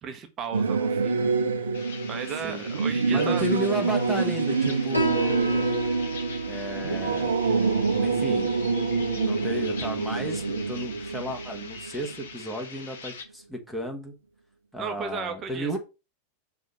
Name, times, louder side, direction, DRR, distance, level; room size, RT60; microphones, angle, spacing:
voice 1, 0.0-1.3 2.1-3.4 14.8-15.8, right 6 dB, 30° right, 1.1 m, -35 dB
Singing / Musical instrument, 0.5-12.4, right 4 dB, 70° right, 0.9 m, -26 dB
sound 1, 1.7-13.2, left 5 dB, 65° left, 1.2 m, -43 dB
voice 2, 3.1-5.8 6.5-7.6 8.0-8.5 9.0-14.1 14.7-15.8, equal, 5° left, 1.6 m, -33 dB
Piano, 4.9-12.0, right 2 dB, 90° left, 1.3 m, -35 dB
6.2 x 3.5 x 5.5 m
figure-of-eight pair, 90°, 0 cm